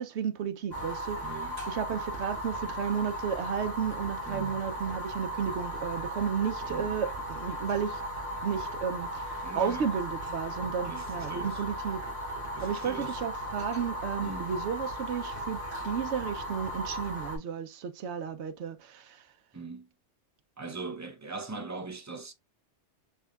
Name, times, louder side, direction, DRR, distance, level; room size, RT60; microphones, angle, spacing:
voice 1, 0.0-8.0 8.4-12.0 12.6-19.2, right 7 dB, 75° right, 1.0 m, -33 dB
Fire, 0.7-17.4, equal, 60° right, 2.7 m, -36 dB
voice 2, 1.2-1.6 4.2-4.6 6.7-6.9 9.4-9.9 10.9-11.6 12.5-13.2 14.2-14.6 19.5-19.9 20.6-22.3, right 3 dB, 20° right, 0.4 m, -41 dB
5.4 x 3.3 x 2.3 m
omnidirectional pair, 1.2 m